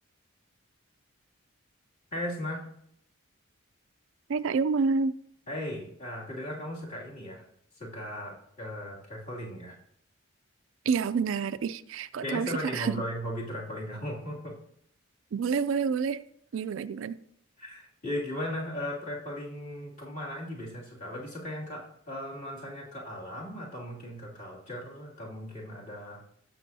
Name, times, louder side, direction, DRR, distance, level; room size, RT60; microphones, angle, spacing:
voice 1, 2.1-2.6 5.5-7.4 7.8-9.7 12.2-14.5 17.6-26.3, left 1 dB, 35° left, 2.6 m, -37 dB
voice 2, 4.3-5.1 10.9-13.0 15.3-16.2 16.5-17.2, right 5 dB, 65° right, 0.4 m, -28 dB
16.0 x 6.2 x 2.7 m
head